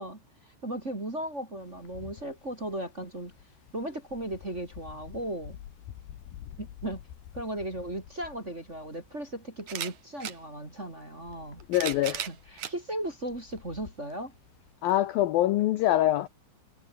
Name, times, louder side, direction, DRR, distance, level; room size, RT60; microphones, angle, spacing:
voice 1, 0.0-3.3 3.7-5.6 6.6-7.0 7.3-11.6 12.1-14.3, right 1 dB, 20° right, 2.3 m, -36 dB
Wind, 1.6-14.7, left 11 dB, 65° left, 3.7 m, -50 dB
sound 1, 8.2-8.3 9.6-10.4 11.4-12.8 13.5-13.6 14.9-15.0, right 10 dB, 55° right, 2.4 m, -36 dB
voice 2, 11.7-12.3 14.8-16.3, left 14 dB, 80° left, 2.1 m, -24 dB
omnidirectional pair, 5.3 m